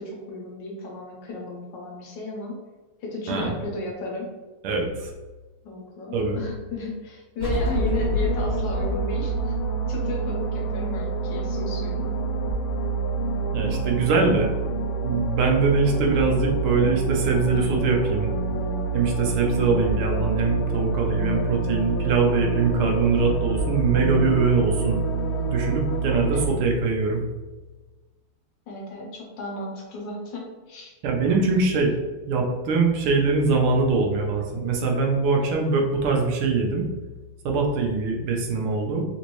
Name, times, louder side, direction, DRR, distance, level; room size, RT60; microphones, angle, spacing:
voice 1, 0.0-2.6 3.0-4.3 5.6-9.5 9.9-12.1 26.3-26.6 28.7-30.9, left 2 dB, 65° left, -2 dB, 1.3 m, -34 dB
voice 2, 4.6-5.1 6.1-6.4 13.5-14.5 15.0-18.3 18.9-25.0 25.5-27.2 31.0-31.9 32.3-36.9 37.4-39.1, right 4 dB, 85° right, 0 dB, 1.6 m, -23 dB
sound 1, 7.4-26.5, right 4 dB, 85° left, 1.5 m, -27 dB
sound 2, 7.4-10.8, left 5 dB, 60° right, 2.1 m, -30 dB
4.2 x 2.6 x 2.9 m, 1.2 s
omnidirectional pair, 2.4 m